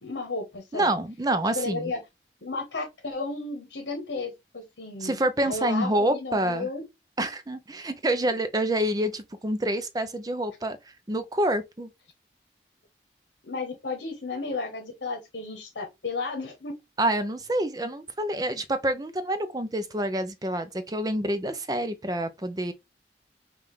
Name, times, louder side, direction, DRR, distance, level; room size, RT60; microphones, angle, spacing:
voice 1, 0.0-0.9 1.5-2.0 2.4-5.2 5.4-6.8 13.4-16.7, left 3 dB, 75° left, 1.0 m, -33 dB
voice 2, 0.7-1.9 5.0-6.7 7.2-10.8 11.1-11.9 17.0-22.7, right 1 dB, 20° right, 0.5 m, -27 dB
5.5 x 2.4 x 3.1 m
head